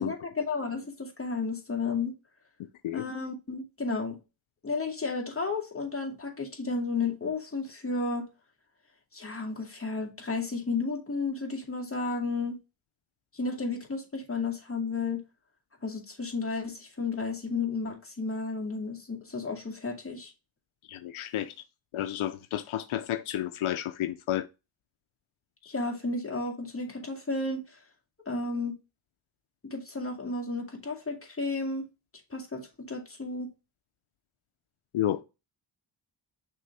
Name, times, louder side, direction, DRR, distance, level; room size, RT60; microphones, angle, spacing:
voice 1, 0.0-2.1 2.9-4.2 4.6-8.2 9.1-12.6 13.3-15.2 15.8-20.3 25.7-27.8 28.3-28.7 29.7-31.9 32.3-33.5, left 3 dB, 25° left, 2.2 m, -32 dB
voice 2, 20.9-21.5 21.9-24.5 25.6-25.7 34.9-35.2, left 12 dB, 85° left, 0.6 m, -31 dB
6.1 x 3.4 x 4.7 m
wide cardioid pair, 85°, 48 cm